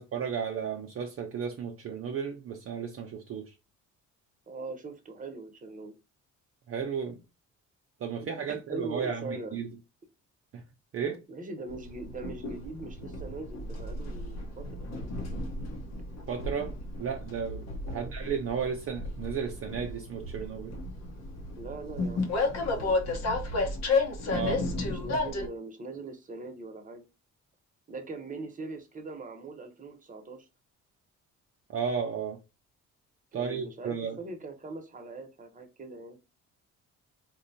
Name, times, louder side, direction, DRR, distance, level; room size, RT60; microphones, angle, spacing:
voice 1, 0.0-3.5 6.7-7.2 8.0-9.7 10.5-10.6 10.9-11.2 16.3-20.7 24.3-24.6 31.7-32.4 33.3-34.2, right 6 dB, 50° right, 0.6 m, -34 dB
voice 2, 4.5-5.9 8.2-9.6 11.3-15.4 17.9-18.1 21.6-22.3 22.7-23.2 24.8-27.0 27.9-30.5 33.3-36.2, right 3 dB, 25° right, 0.9 m, -41 dB
Train, 11.7-25.5, left 2 dB, 60° left, 0.9 m, -33 dB
4.0 x 2.2 x 2.7 m
cardioid pair, 90°, 30 cm